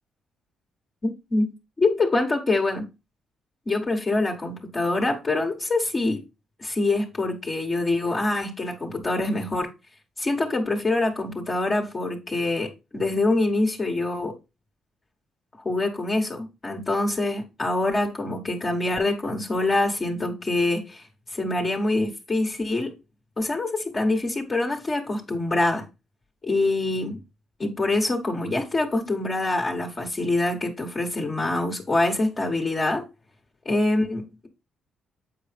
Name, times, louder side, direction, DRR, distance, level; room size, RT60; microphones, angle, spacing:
voice 1, 1.0-2.9 3.7-6.2 6.6-9.7 10.2-14.3 15.6-21.0 21.3-22.9 23.4-25.9 26.4-27.2 27.6-33.0 33.6-34.5, left 2 dB, 30° left, 1.3 m, -25 dB
7.8 x 4.7 x 3.5 m
cardioid pair, 90°, 0 cm